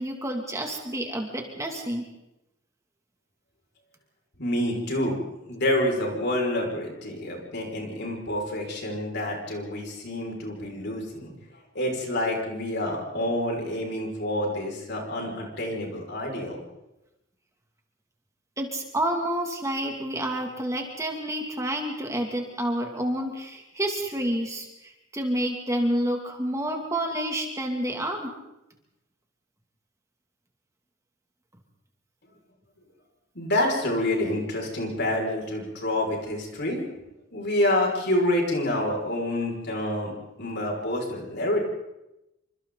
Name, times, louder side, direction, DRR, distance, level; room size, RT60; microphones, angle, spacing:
voice 1, 0.0-2.0 18.6-28.3, right 1 dB, 15° right, 2 dB, 2.7 m, -29 dB
voice 2, 4.4-5.2 5.5-11.3 11.7-16.6 33.3-36.8 37.3-40.1 40.4-41.6, left 1 dB, 55° left, 0 dB, 6.0 m, -27 dB
27.5 x 25.5 x 4.1 m, 0.91 s
head